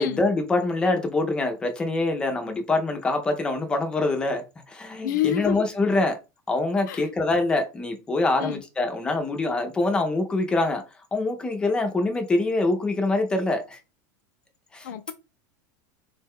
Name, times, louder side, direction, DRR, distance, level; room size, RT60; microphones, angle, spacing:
voice 1, 0.0-6.2 6.5-10.8 11.1-13.8 14.7-14.9, left 2 dB, 10° left, 0.3 m, -25 dB
voice 2, 5.0-5.7 6.9-7.1 8.4-8.6 14.8-15.1, left 11 dB, 65° left, 0.5 m, -28 dB
3.8 x 2.1 x 3.4 m
supercardioid pair, 180°, 10 cm